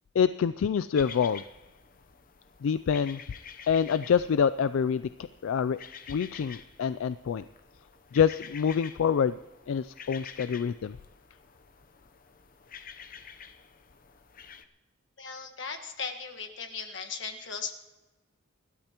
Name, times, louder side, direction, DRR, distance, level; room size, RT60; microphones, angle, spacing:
voice 1, 0.1-1.4 2.6-3.2 3.7-5.1 5.4-5.8 6.1-7.5 8.1-9.4 9.7-11.0, left 7 dB, 80° left, 15 dB, 0.3 m, -26 dB
sound 1, 0.9-14.6, left 7 dB, 40° left, 0.7 m, -49 dB
voice 2, 15.2-17.7, left 5 dB, 60° left, 4 dB, 1.5 m, -37 dB
27.0 x 12.0 x 2.9 m, 1.1 s
head